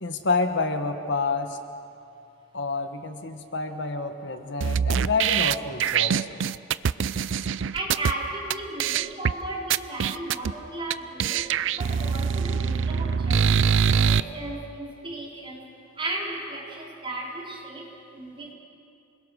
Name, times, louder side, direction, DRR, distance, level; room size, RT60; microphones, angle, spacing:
voice 1, 0.0-1.6 2.5-6.4, left 3 dB, 65° left, 7 dB, 1.3 m, -28 dB
sound 1, 4.6-8.1 8.5-8.6 8.8-9.3 9.7-10.5 10.9-11.0 11.2-14.2, right 7 dB, 70° right, 0.4 m, -23 dB
voice 2, 7.7-11.5 11.8-15.7 16.0-18.5, right 2 dB, 25° right, -3 dB, 4.3 m, -35 dB
27.5 x 21.0 x 6.3 m, 2.6 s
head